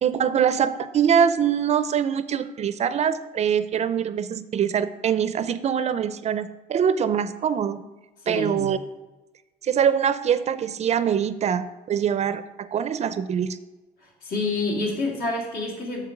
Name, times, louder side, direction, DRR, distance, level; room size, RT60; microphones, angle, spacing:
voice 1, 0.0-7.8 8.3-8.8 9.6-13.6, right 8 dB, 40° right, 14 dB, 0.4 m, -23 dB
voice 2, 8.2-8.7 14.2-16.0, left 2 dB, 75° left, -2 dB, 2.6 m, -27 dB
6.7 x 5.7 x 5.9 m, 1.1 s
cardioid pair, 110°, 17 cm